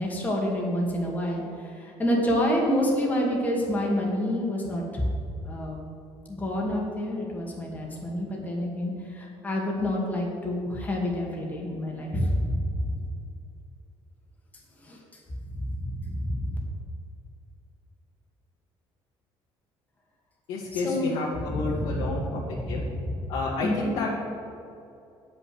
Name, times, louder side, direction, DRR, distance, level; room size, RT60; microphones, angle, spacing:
voice 1, 0.0-5.1 5.4-5.8 6.3-13.0 14.8-15.0 15.5-16.6 20.7-21.1 21.5-23.0 23.6-23.9, equal, 15° left, -2 dB, 2.0 m, -28 dB
voice 2, 20.5-22.4 22.7-22.8 23.3-24.1, left 3 dB, 85° left, -7 dB, 2.0 m, -30 dB
9.0 x 5.8 x 7.8 m, 2.6 s
cardioid pair, 135°, 10 cm